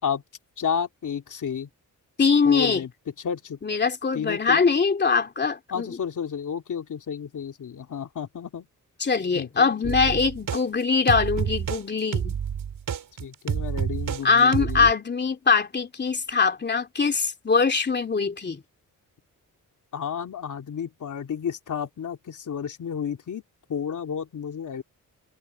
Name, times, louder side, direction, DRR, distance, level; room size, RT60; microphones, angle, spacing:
voice 1, 0.6-1.7 2.2-2.9 3.2-3.6 4.1-4.6 5.7-8.7 9.3-10.2 13.2-14.9 19.9-23.4 23.7-24.8, left 7 dB, 65° left, 2.9 m, -31 dB
voice 2, 2.2-2.8 3.6-6.0 9.0-12.4 14.2-18.6, left 5 dB, 30° left, 2.8 m, -22 dB
sound 1, 9.8-10.6 11.1-11.8 12.1-14.2 14.5-14.9, right 8 dB, 75° right, 5.8 m, -28 dB
wide cardioid pair, 130°, 33 cm